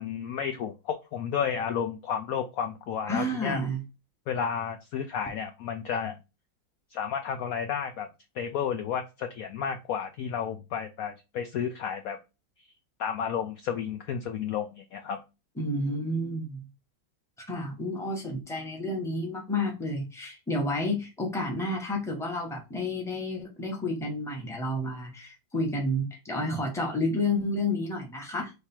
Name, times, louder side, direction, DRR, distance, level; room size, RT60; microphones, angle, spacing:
voice 1, 0.0-3.6 4.3-6.2 6.9-8.1 8.3-12.2 13.0-15.2, left 7 dB, 75° left, 7 dB, 0.8 m, -32 dB
voice 2, 3.1-3.8 15.6-16.7 17.4-28.5, left 1 dB, ahead, 0 dB, 0.9 m, -30 dB
3.4 x 3.3 x 4.3 m, 0.26 s
omnidirectional pair, 2.0 m